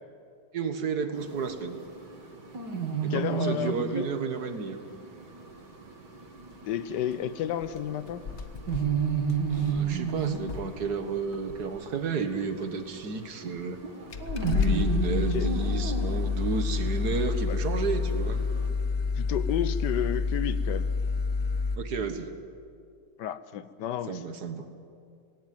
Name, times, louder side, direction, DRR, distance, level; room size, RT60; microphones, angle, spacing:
voice 1, 0.5-1.8 3.0-4.8 9.5-13.8 14.5-18.4 21.8-22.3 24.1-24.7, right 5 dB, 65° right, 8 dB, 1.9 m, -32 dB
sound 1, 1.1-18.7, right 6 dB, 85° right, 2.7 m, -34 dB
voice 2, 3.1-4.0 6.6-8.2 15.1-15.5 17.5-17.6 19.2-20.9 23.2-24.2, left 10 dB, 80° left, 14 dB, 1.4 m, -32 dB
sound 2, 6.9-7.1 7.6-7.8 8.1-10.8 11.3-11.7 12.6-12.7 13.6-13.7 14.1-21.8, left 5 dB, 45° left, 1.1 m, -29 dB
18.0 x 17.5 x 9.3 m, 2.3 s
omnidirectional pair, 1.8 m